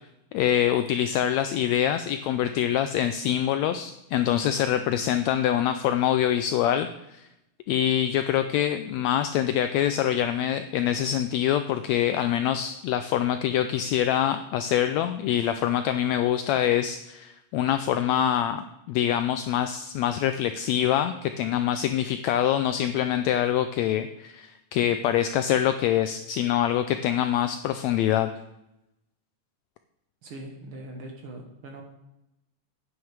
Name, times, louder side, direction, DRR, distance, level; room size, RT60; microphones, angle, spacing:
voice 1, 0.3-7.2 7.7-28.3, left 10 dB, 80° left, 10 dB, 1.6 m, -25 dB
voice 2, 30.2-31.8, right 1 dB, 55° right, 2 dB, 1.8 m, -41 dB
9.4 x 9.3 x 4.7 m, 0.88 s
omnidirectional pair, 3.6 m